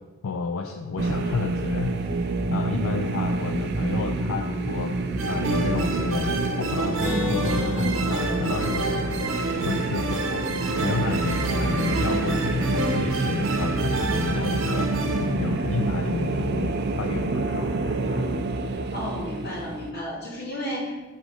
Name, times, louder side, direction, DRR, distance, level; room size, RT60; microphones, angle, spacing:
voice 1, 0.2-5.0 5.2-14.9 15.2-18.3, left 4 dB, 85° left, 5 dB, 0.4 m, -31 dB
sound 1, 1.0-19.9, right 3 dB, 55° right, 0.4 m, -27 dB
sound 2, 5.2-15.3, right 2 dB, 75° right, 0.8 m, -29 dB
Acoustic guitar, 7.0-10.7, left 3 dB, 10° left, 0.7 m, -34 dB
voice 2, 18.9-21.0, equal, 55° left, -5 dB, 1.9 m, -33 dB
6.2 x 4.0 x 4.9 m, 1.3 s
head